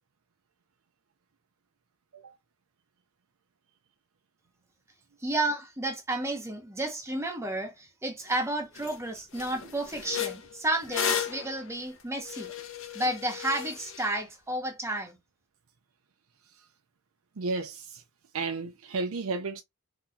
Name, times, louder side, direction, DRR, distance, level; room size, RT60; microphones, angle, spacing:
voice 1, 5.2-12.5 12.9-15.2, right 1 dB, 15° right, 1.1 m, -32 dB
sound 1, 8.3-8.4 8.8-9.0 9.3-14.1, left 8 dB, 65° left, 1.0 m, -34 dB
voice 2, 17.4-18.0 18.3-19.6, right 3 dB, 80° right, 0.6 m, -33 dB
3.8 x 3.0 x 2.7 m
head